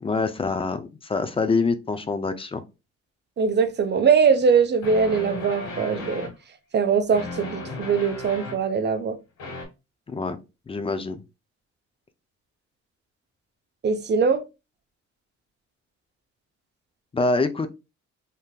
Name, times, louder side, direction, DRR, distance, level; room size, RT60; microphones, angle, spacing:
voice 1, 0.0-2.6 10.1-10.4 10.7-11.2 17.1-17.7, left 3 dB, 20° left, 0.4 m, -25 dB
voice 2, 3.4-6.3 6.7-9.2 13.8-14.4, right 5 dB, 35° right, 0.5 m, -21 dB
sound 1, 4.0-4.1 4.8-6.3 7.1-8.6 9.4-9.7, left 2 dB, 75° left, 1.5 m, -35 dB
3.5 x 2.7 x 2.2 m
cardioid pair, 90°, 30 cm